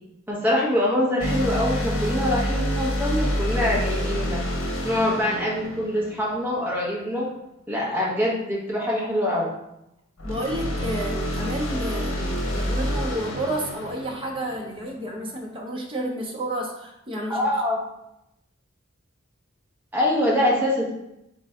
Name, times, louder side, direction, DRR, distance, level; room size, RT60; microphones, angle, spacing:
voice 1, 0.3-4.4 4.8-7.3 7.7-9.5 17.3-17.8 19.9-20.9, left 1 dB, 10° right, -6 dB, 1.2 m, -24 dB
sound 1, 1.2-6.7 10.2-14.9, equal, 75° left, 0.9 m, -28 dB
voice 2, 10.2-17.5, right 1 dB, 25° right, -1 dB, 0.8 m, -31 dB
3.9 x 3.3 x 3.5 m, 0.85 s
head